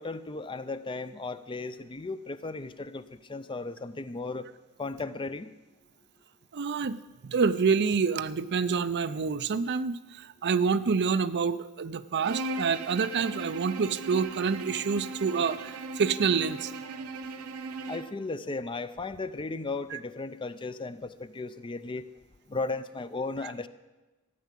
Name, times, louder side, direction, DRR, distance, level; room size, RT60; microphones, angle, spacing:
voice 1, 0.0-4.5 4.8-5.6 17.9-22.0 22.5-23.7, left 3 dB, 20° left, 12 dB, 0.5 m, -35 dB
voice 2, 6.5-16.7 19.9-20.0, right 5 dB, 50° right, 14 dB, 0.5 m, -27 dB
Bowed string instrument, 12.2-18.2, right 3 dB, 75° right, 0.9 m, -38 dB
14.0 x 9.3 x 7.5 m, 1.1 s
head